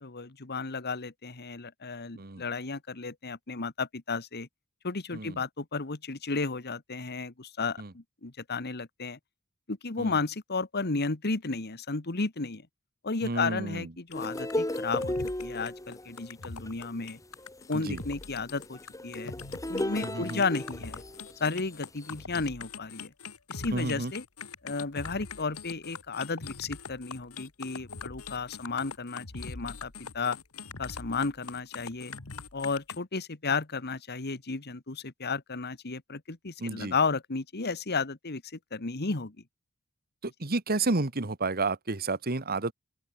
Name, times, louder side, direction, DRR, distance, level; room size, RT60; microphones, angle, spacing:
voice 1, 0.0-4.5 4.8-9.2 9.7-12.7 13.0-17.2 17.7-19.3 19.7-21.0 21.4-23.1 23.5-24.2 24.6-30.4 30.8-32.1 32.5-39.4, left 4 dB, 50° left, 1.5 m, -33 dB
voice 2, 13.2-13.9 17.7-18.0 20.0-20.4 23.7-24.1 36.6-36.9 40.2-42.7, right 3 dB, 45° right, 1.6 m, -31 dB
sound 1, 14.1-33.0, left 4 dB, 85° left, 2.0 m, -43 dB
sound 2, 14.1-21.4 22.0-22.2, left 1 dB, 15° left, 2.3 m, -35 dB
open air
head